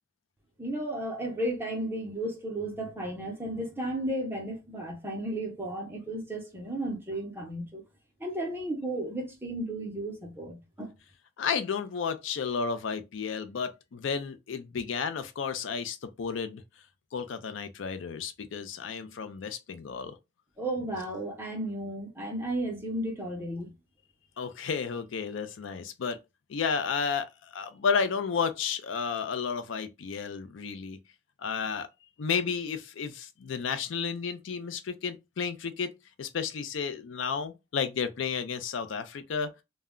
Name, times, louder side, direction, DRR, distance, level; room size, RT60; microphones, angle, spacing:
voice 1, 0.6-7.8 8.2-10.9 20.6-23.7, right 1 dB, 10° right, 0.6 m, -34 dB
voice 2, 11.4-16.6 17.1-20.2 24.4-26.2 26.5-31.0 31.4-31.9 32.2-35.9 36.2-39.5, left 6 dB, 90° left, 0.4 m, -32 dB
2.2 x 2.1 x 3.6 m
head